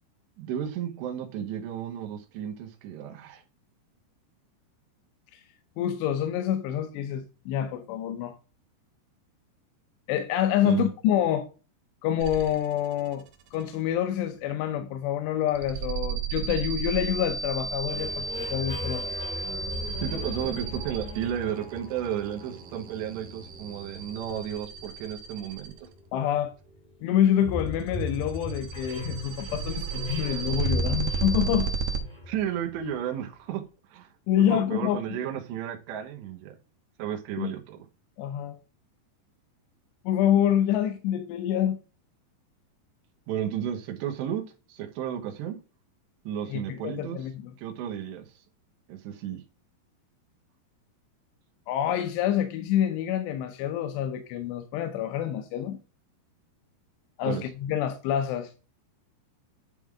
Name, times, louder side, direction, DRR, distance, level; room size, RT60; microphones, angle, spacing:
voice 1, 0.4-3.4 10.6-10.9 20.0-25.9 32.3-33.6 33.9-34.1 34.4-36.5 37.0-37.8 43.3-45.6 46.2-47.2 47.6-48.2 48.9-49.4 57.2-57.4, right 10 dB, 90° right, 3.3 m, -33 dB
voice 2, 5.8-8.3 10.1-11.5 12.0-13.2 13.5-19.1 26.1-26.5 27.0-31.7 34.3-35.2 37.4-37.5 38.2-38.6 40.1-41.8 46.5-47.5 51.7-55.8 57.2-58.5, left 10 dB, 85° left, 3.0 m, -27 dB
sound 1, 12.2-12.8 13.1-13.6 15.5-25.9 27.9-32.0, right 5 dB, 65° right, 2.6 m, -33 dB
sound 2, 17.9-33.3, left 2 dB, 35° left, 0.7 m, -38 dB
10.5 x 3.7 x 4.7 m
omnidirectional pair, 4.8 m